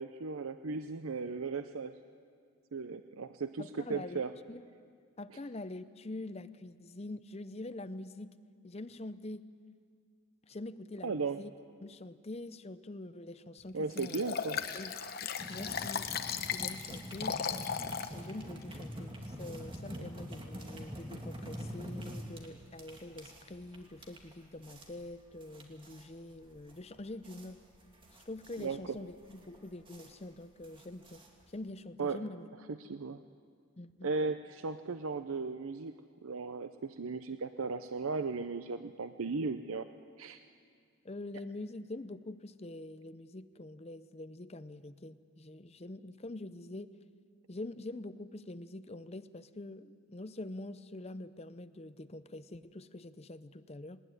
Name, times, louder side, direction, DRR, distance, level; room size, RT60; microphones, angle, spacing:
voice 1, 0.0-1.9 2.7-4.3 11.0-11.4 13.7-14.6 20.0-20.1 28.6-28.8 32.0-32.2 32.8-33.2 34.0-35.9 36.2-39.9 40.2-40.4, right 4 dB, 80° right, 10 dB, 0.6 m, -36 dB
voice 2, 3.6-4.6 5.2-8.4 8.6-9.5 10.4-11.5 11.8-14.2 14.7-15.0 15.2-16.1 16.5-17.4 18.1-27.6 28.3-31.2 31.5-32.5 33.8-34.1 41.0-46.9 47.5-54.0, left 2 dB, 30° left, 13 dB, 0.6 m, -45 dB
Liquid, 14.0-18.1 18.6-18.7, left 7 dB, 45° left, 1.0 m, -36 dB
sound 1, 15.4-31.7, equal, 25° right, 2.3 m, -46 dB
20.0 x 19.5 x 9.7 m, 2.1 s
head